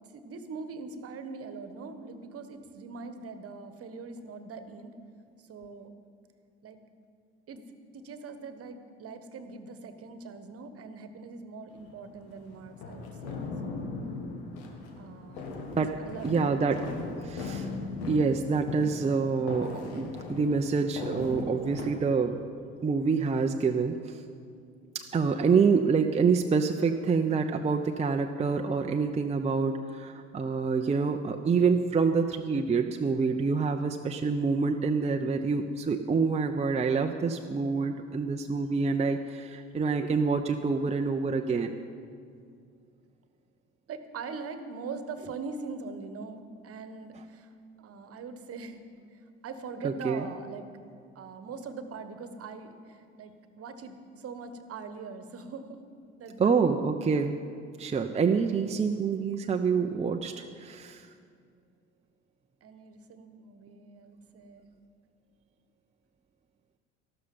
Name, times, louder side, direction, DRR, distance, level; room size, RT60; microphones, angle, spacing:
voice 1, 0.1-5.0 5.4-5.9 6.6-6.8 7.5-7.6 7.9-13.9 15.0-15.4 16.0-17.1 25.3-25.7 43.9-48.8 49.1-50.7 51.1-55.8 56.2-56.8 62.6-64.6, right 4 dB, 45° right, 9 dB, 1.3 m, -42 dB
sound 1, 11.7-21.9, left 3 dB, 70° left, 1.6 m, -38 dB
voice 2, 16.2-16.8 17.2-17.7 18.1-22.4 22.8-24.2 24.9-41.7 49.8-50.2 56.4-57.4 57.8-61.1, right 5 dB, 20° right, 4 dB, 0.7 m, -27 dB
13.5 x 12.5 x 5.5 m, 2.3 s
figure-of-eight pair, 55°, 34 cm